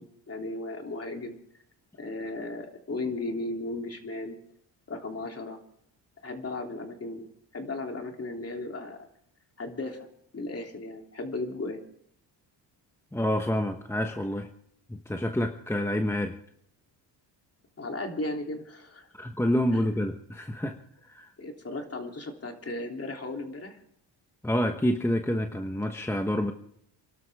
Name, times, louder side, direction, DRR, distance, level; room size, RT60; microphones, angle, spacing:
voice 1, 0.0-1.4 2.0-4.4 4.9-5.6 6.2-7.3 7.5-9.1 9.6-10.1 10.3-11.8 17.8-19.1 19.7-19.8 21.4-23.8, left 2 dB, 30° left, 3 dB, 3.2 m, -35 dB
voice 2, 13.1-14.5 14.9-16.4 19.1-20.8 21.0-21.3 24.4-26.5, left 1 dB, 5° left, 5 dB, 1.2 m, -28 dB
28.0 x 12.5 x 3.6 m, 0.70 s
cardioid pair, 95°, 46 cm